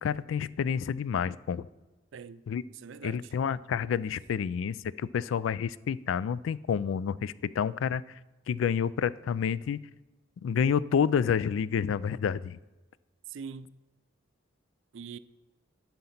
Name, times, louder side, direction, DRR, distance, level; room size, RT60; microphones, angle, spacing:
voice 1, 0.0-1.7 2.5-2.6 3.0-8.0 8.5-9.8 10.4-12.6, left 7 dB, 85° left, 0.3 m, -29 dB
voice 2, 2.1-2.4 2.7-3.3 13.3-13.8 14.9-15.2, right 6 dB, 75° right, 0.4 m, -43 dB
11.5 x 4.2 x 5.8 m
head